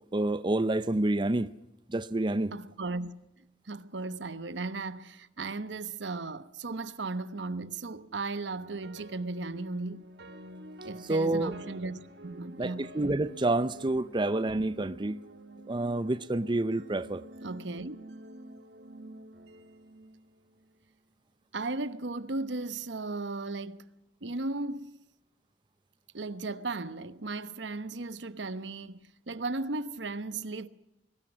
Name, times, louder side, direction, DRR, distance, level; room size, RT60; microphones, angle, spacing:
voice 1, 0.1-1.5 1.9-2.5 11.1-11.5 12.6-15.2 15.7-17.2, right 2 dB, 25° right, 0.6 m, -28 dB
voice 2, 2.5-3.1 3.4-10.1 10.8-12.9 17.4-18.0 21.5-23.9 24.2-25.0 26.1-30.7, right 3 dB, 85° right, 1.0 m, -36 dB
sound 1, 8.5-20.8, right 1 dB, 70° right, 1.8 m, -49 dB
22.5 x 19.5 x 6.2 m
head